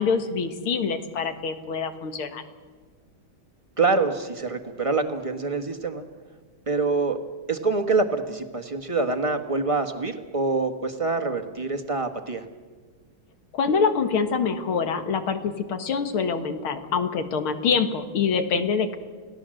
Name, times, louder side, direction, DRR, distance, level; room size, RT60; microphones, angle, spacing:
voice 1, 0.0-2.4 13.5-19.0, left 5 dB, 85° left, 8 dB, 2.5 m, -25 dB
voice 2, 3.8-6.0 6.7-7.2 7.5-12.4, right 3 dB, 15° right, 5 dB, 1.4 m, -25 dB
29.5 x 18.0 x 7.8 m, 1.5 s
omnidirectional pair, 2.2 m